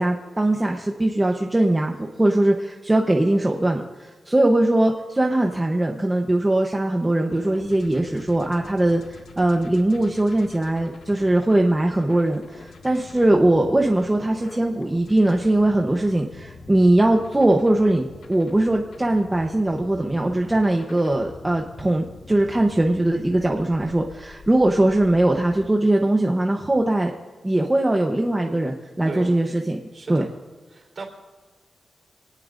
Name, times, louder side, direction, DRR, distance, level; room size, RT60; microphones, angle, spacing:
voice 1, 0.0-3.8 4.3-27.1 27.4-29.8 30.1-30.3, right 1 dB, 10° right, 1 dB, 0.9 m, -20 dB
sound 1, 7.3-25.7, left 3 dB, 85° left, 1.9 m, -45 dB
voice 2, 29.9-30.3 30.7-31.0, right 3 dB, 40° right, 1 dB, 3.6 m, -35 dB
26.5 x 18.5 x 2.6 m, 1.4 s
wide cardioid pair, 175°, 0 cm